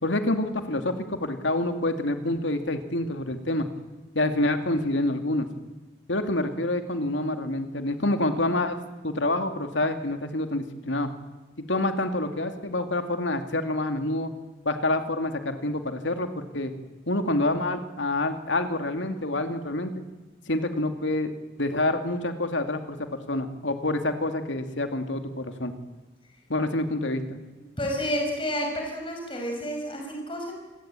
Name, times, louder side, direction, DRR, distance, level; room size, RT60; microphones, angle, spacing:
voice 1, 0.0-3.7 4.1-5.5 6.1-8.8 9.0-11.1 11.6-14.3 14.6-16.7 17.1-19.9 20.5-21.3 21.6-25.7 26.5-27.4, left 2 dB, 85° left, 7 dB, 2.5 m, -27 dB
voice 2, 27.8-30.5, equal, 25° left, 1 dB, 5.9 m, -30 dB
27.0 x 21.5 x 9.1 m, 1.2 s
head